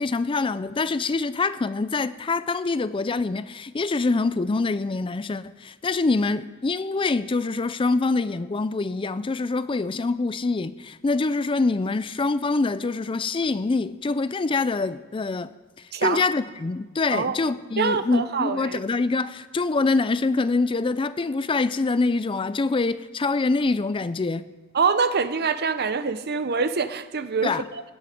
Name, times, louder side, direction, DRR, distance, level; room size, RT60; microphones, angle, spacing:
voice 1, 0.0-15.5 16.0-24.5 27.4-27.6, left 3 dB, 25° left, 0.4 m, -25 dB
voice 2, 15.9-16.2 17.1-17.4 17.8-18.8 24.7-27.8, right 5 dB, 50° right, 0.7 m, -25 dB
17.5 x 11.5 x 5.2 m
head